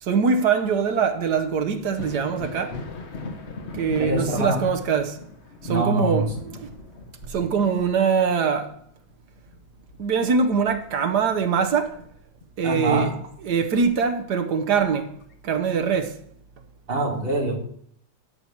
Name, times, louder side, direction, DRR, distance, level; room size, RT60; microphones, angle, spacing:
voice 1, 0.0-2.8 3.7-5.2 5.6-6.7 7.3-8.8 10.0-12.0 12.6-13.1 13.4-15.1 15.4-16.1, right 6 dB, 60° right, 1.4 m, -23 dB
Thunder, 1.8-11.1 11.5-12.7 14.3-14.4 15.2-15.3, left 3 dB, 50° left, 0.8 m, -40 dB
voice 2, 4.0-4.7 5.7-6.3 12.6-13.2 16.9-17.6, right 1 dB, 30° right, 1.8 m, -24 dB
11.5 x 4.6 x 7.2 m
omnidirectional pair, 2.3 m